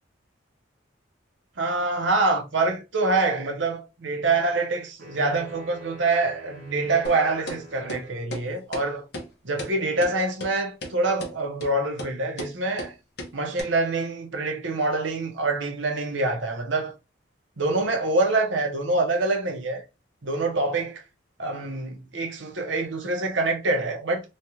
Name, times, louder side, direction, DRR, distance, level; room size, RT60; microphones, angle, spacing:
voice 1, 1.6-9.0 9.4-12.9 13.3-16.9 17.6-19.8 20.2-21.0 21.4-24.2, right 2 dB, 70° right, 0.8 m, -25 dB
sound 1, 5.0-8.3, equal, 45° right, 1.3 m, -47 dB
sound 2, 7.0-7.2 7.5-7.6 7.9-8.0 8.3-8.4 8.7-8.8 9.1-9.3 9.6-9.7 10.0-10.1 10.4-10.5 10.8-10.9 11.2-11.3 11.6-11.7 12.0-12.1 12.4-12.5 12.8-12.9 13.2-13.3 13.6-13.7, equal, 55° left, 0.8 m, -34 dB
3.3 x 2.3 x 2.8 m
head